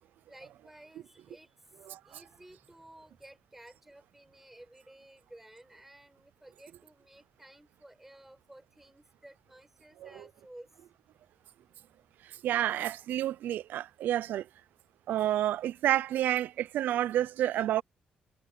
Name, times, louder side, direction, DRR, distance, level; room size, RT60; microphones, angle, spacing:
voice 1, 0.3-10.7, right 1 dB, 10° right, 5.6 m, -54 dB
voice 2, 12.4-14.5 15.1-17.8, right 12 dB, 80° right, 0.5 m, -29 dB
cardioid pair, 110°, 3 cm